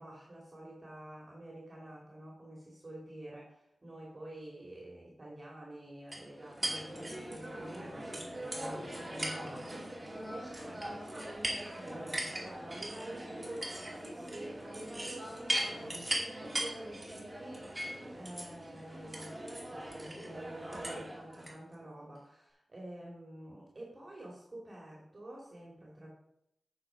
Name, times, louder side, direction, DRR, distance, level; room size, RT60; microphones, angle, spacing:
voice 1, 0.0-19.4 19.7-26.1, right 1 dB, 30° right, -3 dB, 2.5 m, -48 dB
sound 1, 6.1-21.5, right 1 dB, 15° right, 2.5 m, -40 dB
8.8 x 6.1 x 5.0 m, 0.76 s
wide cardioid pair, 85°, 0 cm